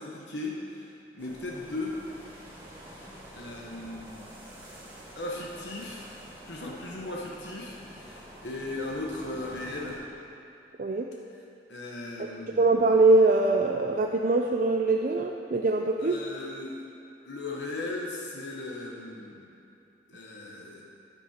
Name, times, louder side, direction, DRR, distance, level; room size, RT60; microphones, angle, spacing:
voice 1, 0.0-2.0 2.9-3.0 3.3-4.4 5.1-6.2 6.4-10.0 11.7-12.7 16.0-16.8 17.2-19.5 20.1-20.8, left 2 dB, 85° left, -2 dB, 1.2 m, -37 dB
sound 1, 1.2-10.0, equal, 10° right, 2.1 m, -48 dB
voice 2, 12.6-16.2, right 2 dB, 45° right, 2 dB, 0.4 m, -23 dB
9.5 x 9.5 x 4.4 m, 2.7 s
head